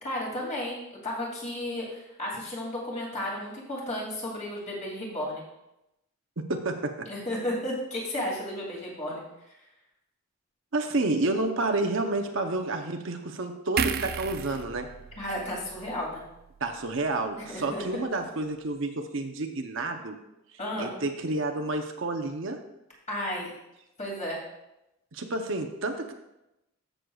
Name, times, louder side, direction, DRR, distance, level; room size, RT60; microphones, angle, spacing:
voice 1, 0.0-5.4 7.1-9.2 15.2-16.2 17.4-18.0 20.6-20.9 23.1-23.5 24.0-24.4, left 1 dB, 30° left, -4 dB, 2.6 m, -33 dB
voice 2, 6.5-7.1 10.7-14.9 16.6-20.2 20.8-22.6 25.1-26.1, right 2 dB, 60° right, 5 dB, 0.8 m, -30 dB
sound 1, 13.8-17.1 17.5-17.7, right 6 dB, 45° right, 0.3 m, -34 dB
14.0 x 6.5 x 2.4 m, 0.89 s
head